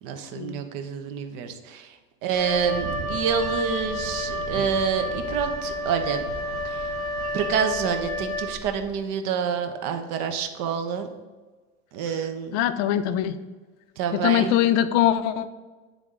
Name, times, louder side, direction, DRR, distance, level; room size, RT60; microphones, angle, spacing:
voice 1, 0.0-1.9 2.2-6.2 6.6-6.9 7.3-11.1 11.9-12.6 14.0-14.5, right 7 dB, 60° right, 7 dB, 0.9 m, -27 dB
Wind instrument woodwind instrument, 2.3-8.9, left 1 dB, 40° left, 1.3 m, -30 dB
Boat Water vehicle, 2.6-7.7, right 5 dB, 85° right, 1.0 m, -39 dB
voice 2, 12.5-13.4 14.1-15.5, left 11 dB, 55° left, 12 dB, 0.5 m, -22 dB
9.4 x 3.5 x 3.7 m, 1.3 s
cardioid pair, 145°, 34 cm